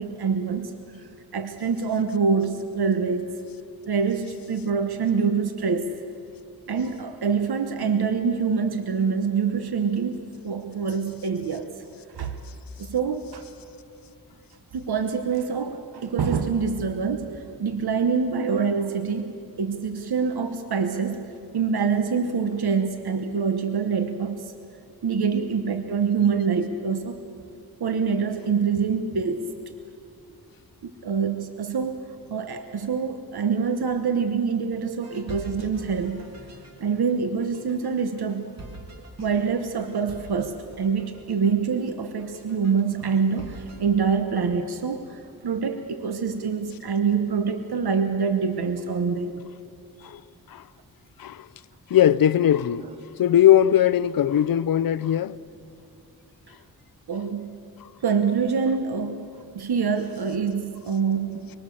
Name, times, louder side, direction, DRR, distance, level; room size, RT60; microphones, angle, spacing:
voice 1, 0.0-3.4 3.9-5.9 6.7-11.8 12.2-12.4 12.8-13.4 14.7-21.3 21.5-24.5 25.0-27.2 27.8-29.5 30.8-36.3 36.8-38.4 39.2-49.4 52.8-52.9 57.1-57.6 58.0-61.5, right 5 dB, 85° right, 1.2 m, -25 dB
sound 1, 35.0-43.9, right 2 dB, 45° right, 2.8 m, -43 dB
voice 2, 51.9-52.8 53.2-55.4, left 11 dB, 65° left, 0.6 m, -19 dB
24.5 x 24.0 x 7.0 m
wide cardioid pair, 140°, 37 cm